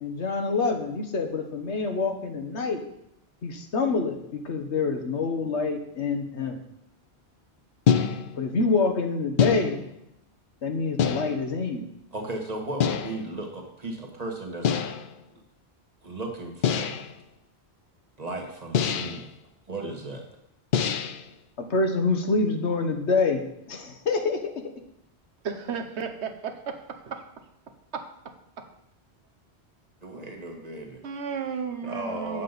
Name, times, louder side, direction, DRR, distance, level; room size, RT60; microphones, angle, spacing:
voice 1, 0.0-2.8 3.4-6.6 8.4-9.8 10.6-11.8 21.7-23.4 23.7-24.4, left 4 dB, 85° left, 5 dB, 1.4 m, -26 dB
sound 1, 7.9-8.5 9.4-10.0 11.0-11.6 12.8-13.3 14.6-15.1 16.6-17.2 18.7-19.3 20.7-21.3, left 7 dB, 60° left, 0.6 m, -25 dB
voice 2, 12.1-14.8 16.0-17.0 18.2-19.3 19.7-20.2 30.0-31.0 31.8-32.4, right 2 dB, 35° right, 2 dB, 1.5 m, -35 dB
voice 3, 25.4-27.2 27.9-28.0 28.6-28.7 31.0-32.4, right 6 dB, 80° right, 5 dB, 1.2 m, -33 dB
8.3 x 7.5 x 4.0 m, 0.77 s
omnidirectional pair, 1.1 m